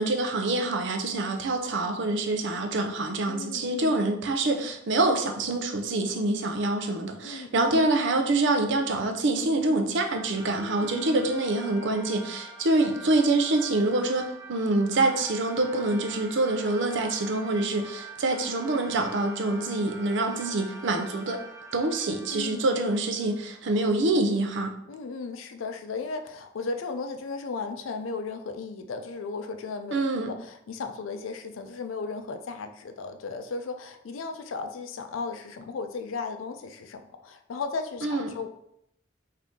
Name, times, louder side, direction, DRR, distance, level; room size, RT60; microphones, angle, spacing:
voice 1, 0.0-21.4 21.7-24.7 29.9-30.3 38.0-38.3, right 2 dB, 65° right, 5 dB, 0.5 m, -26 dB
voice 2, 3.3-4.0 7.2-7.9 10.5-11.3 22.3-22.7 24.9-30.0 30.3-38.5, left 4 dB, 80° left, 7 dB, 0.4 m, -35 dB
sound 1, 10.0-23.8, right 3 dB, 15° right, 0.8 m, -45 dB
3.7 x 2.7 x 3.6 m, 0.76 s
head